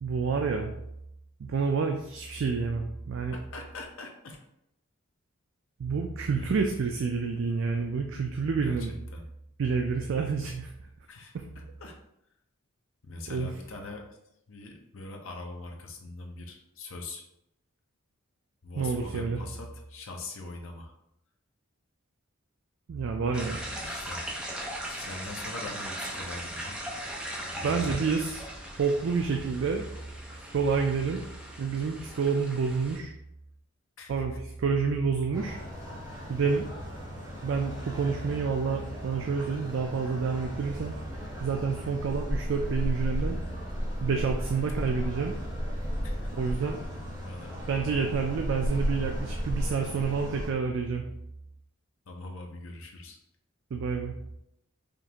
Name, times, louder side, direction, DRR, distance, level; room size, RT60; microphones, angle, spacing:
voice 1, 0.0-0.7 1.4-3.4 5.8-8.9 9.6-10.7 13.3-13.5 18.8-19.4 22.9-23.6 27.6-28.4 28.8-29.9 30.5-31.2 31.6-33.1 34.1-35.6 36.3-36.7 37.4-41.0 41.4-43.4 44.0-45.3 46.3-46.8 47.7-51.0 53.7-54.2, right 5 dB, 60° right, 3 dB, 0.3 m, -28 dB
voice 2, 3.3-4.4 6.3-6.7 8.6-9.2 11.1-12.0 13.0-14.1 14.5-17.2 18.6-20.9 23.8-24.3 24.8-26.8 27.4-27.9 34.0-34.2 46.0-46.3 47.2-47.5 49.2-49.3 52.1-53.2, left 2 dB, 65° left, 2 dB, 0.7 m, -42 dB
sound 1, 23.3-33.0, right 1 dB, 5° right, 0.6 m, -39 dB
sound 2, 35.3-50.5, equal, 20° right, 1.5 m, -35 dB
5.1 x 2.5 x 2.8 m, 0.80 s
head